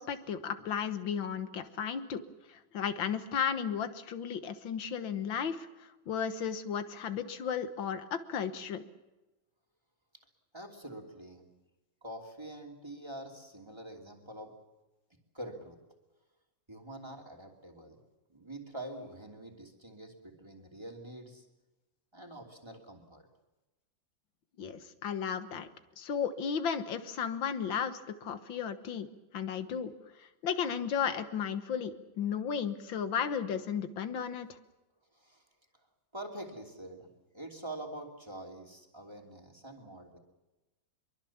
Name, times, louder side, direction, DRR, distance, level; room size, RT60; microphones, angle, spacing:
voice 1, 0.0-2.2 2.5-8.8 24.6-25.7 26.0-29.1 29.3-29.9 30.2-34.5, left 7 dB, 80° left, 10 dB, 2.0 m, -34 dB
voice 2, 10.5-11.5 12.0-14.6 15.3-15.8 16.7-18.0 18.3-21.5 22.1-23.3 35.1-35.4 36.1-40.2, right 1 dB, 15° right, 1 dB, 2.9 m, -45 dB
24.5 x 23.0 x 7.3 m, 1.1 s
omnidirectional pair, 2.1 m